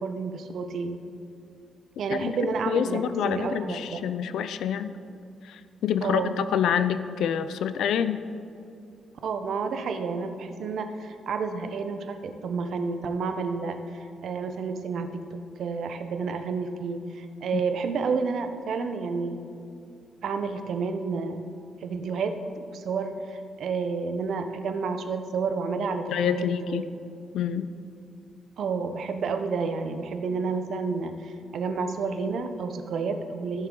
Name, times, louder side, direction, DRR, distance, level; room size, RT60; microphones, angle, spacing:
voice 1, 0.0-1.0 2.0-4.0 6.0-6.4 9.2-19.4 20.2-21.5 21.8-27.0 28.6-33.7, right 4 dB, 70° right, 7 dB, 0.8 m, -30 dB
voice 2, 2.7-4.9 5.4-8.2 17.5-17.6 26.1-26.8 27.3-27.7, left 8 dB, 90° left, 12 dB, 0.4 m, -27 dB
15.0 x 6.5 x 3.8 m, 2.5 s
cardioid pair, 120°, 0 cm